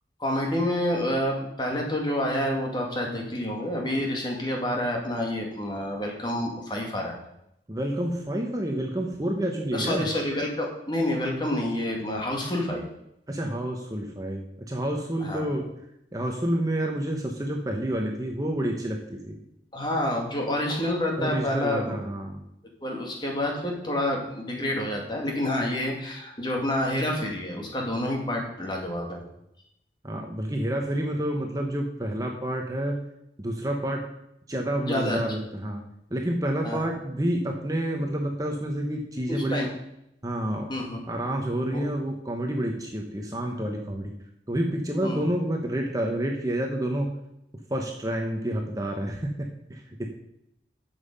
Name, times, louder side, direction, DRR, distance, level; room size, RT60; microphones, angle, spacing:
voice 1, 0.2-7.2 9.7-12.8 15.2-15.5 19.7-22.0 22.8-29.2 34.8-35.2 36.6-36.9 39.3-39.7 40.7-41.0 41.7-41.9 45.0-45.2, left 1 dB, 25° left, 0 dB, 2.1 m, -28 dB
voice 2, 7.7-10.1 13.3-15.8 16.1-19.4 21.2-22.4 30.0-33.0 33.4-34.1 34.5-35.8 36.1-39.7 40.2-40.7 41.1-44.1 44.5-47.2 47.7-50.1, right 1 dB, 20° right, 1 dB, 1.1 m, -29 dB
11.0 x 7.4 x 5.4 m, 0.81 s
head